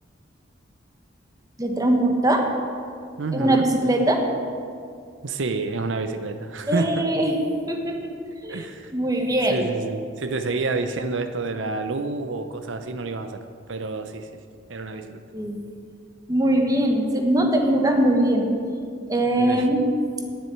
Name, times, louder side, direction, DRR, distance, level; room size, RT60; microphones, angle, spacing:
voice 1, 1.6-2.5 3.3-4.2 6.7-7.4 7.7-8.1 8.4-8.7 8.9-9.6 15.3-15.6 16.3-18.5 19.1-19.9, right 1 dB, 20° right, 3 dB, 1.3 m, -21 dB
voice 2, 3.2-3.7 5.2-7.1 8.5-8.9 9.5-13.4 13.7-14.3 14.7-15.2 19.4-19.7, right 3 dB, 80° right, 9 dB, 0.7 m, -28 dB
10.0 x 7.7 x 9.4 m, 2.2 s
head